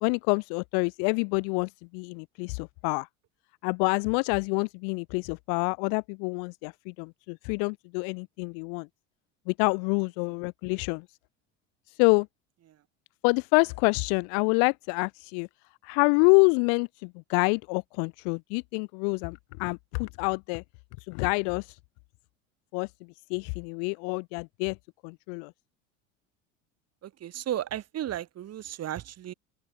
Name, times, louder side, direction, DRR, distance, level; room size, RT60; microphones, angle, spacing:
voice 1, 0.0-3.1 3.6-8.9 9.5-11.0 11.9-12.3 13.2-15.5 15.8-20.6 21.1-21.8 22.7-22.9 23.3-24.8 25.0-25.5, left 40 dB or more, 55° left, 1.3 m, -27 dB
voice 2, 27.0-29.3, right 11 dB, 40° right, 4.3 m, -34 dB
open air
figure-of-eight pair, 70°, 38 cm